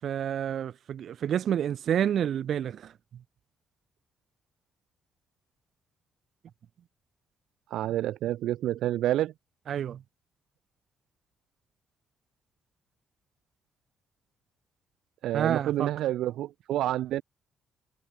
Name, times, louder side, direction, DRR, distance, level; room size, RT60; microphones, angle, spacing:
voice 1, 0.0-2.9 9.7-10.0 15.3-15.9, right 9 dB, 65° right, 7.9 m, -29 dB
voice 2, 7.7-9.3 15.2-17.2, right 13 dB, 80° right, 2.8 m, -28 dB
cardioid pair, 90°, 0 cm